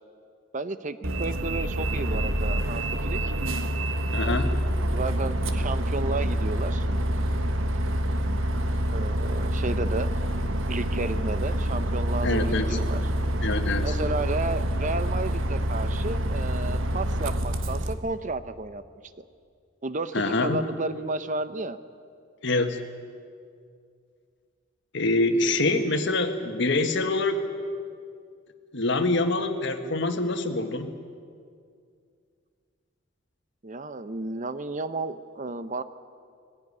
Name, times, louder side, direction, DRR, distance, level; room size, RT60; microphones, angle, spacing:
voice 1, 0.5-3.3 4.2-4.4 4.9-6.9 8.9-10.1 10.7-13.0 13.8-18.8 19.8-21.8 33.6-35.8, right 3 dB, 40° right, 13 dB, 0.7 m, -32 dB
Bus, 1.0-17.9, right 1 dB, 85° right, 1.3 m, -27 dB
voice 2, 4.1-4.5 12.2-12.8 13.4-13.9 20.1-20.6 22.4-22.8 24.9-27.4 28.7-30.9, left 2 dB, 65° left, 7 dB, 1.6 m, -25 dB
20.0 x 15.5 x 9.8 m, 2.3 s
head